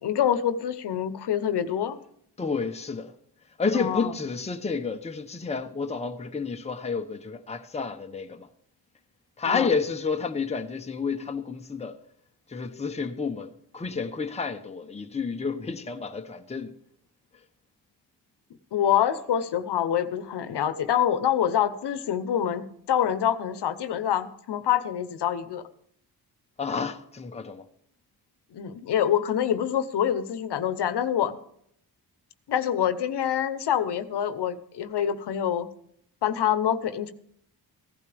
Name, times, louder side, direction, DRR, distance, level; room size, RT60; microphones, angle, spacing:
voice 1, 0.0-2.0 3.7-4.1 9.5-9.7 18.7-25.6 28.5-31.4 32.5-35.7 36.2-37.1, left 9 dB, 75° left, 0.9 m, -26 dB
voice 2, 2.4-3.1 3.6-8.5 9.4-12.0 12.5-16.7 26.6-27.7, left 5 dB, 15° left, 0.8 m, -30 dB
15.5 x 12.0 x 3.4 m
wide cardioid pair, 115°, 41 cm